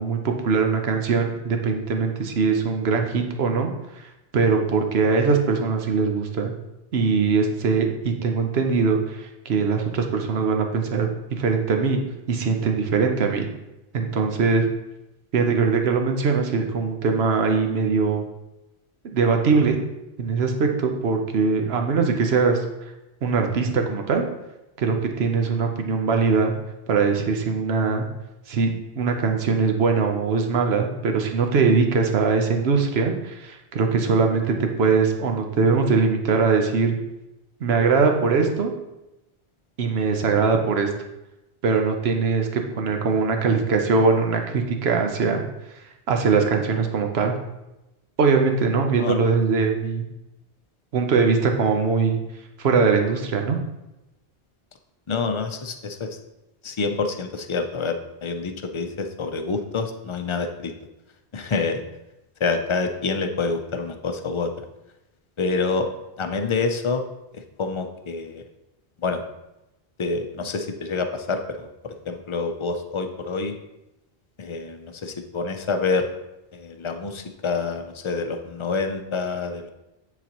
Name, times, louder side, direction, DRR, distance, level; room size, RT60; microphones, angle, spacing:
voice 1, 0.0-3.7 4.3-6.5 6.9-11.1 11.4-12.0 12.3-13.5 13.9-14.7 15.3-18.2 19.1-19.8 20.2-22.6 23.2-24.2 24.8-26.5 26.9-28.1 28.5-36.9 37.6-38.7 39.8-40.9 41.6-45.4 46.1-47.3 48.2-50.0 50.9-52.2 52.6-53.6, right 5 dB, 85° right, 4 dB, 1.1 m, -21 dB
voice 2, 55.1-56.1 56.6-60.7 61.3-61.8 62.4-64.5 65.4-65.9 66.2-67.0 67.6-68.4 69.0-69.2 70.0-73.5 74.4-76.1 76.5-79.7, left 4 dB, 40° left, 6 dB, 0.4 m, -27 dB
9.5 x 4.0 x 2.9 m, 0.95 s
omnidirectional pair, 1.0 m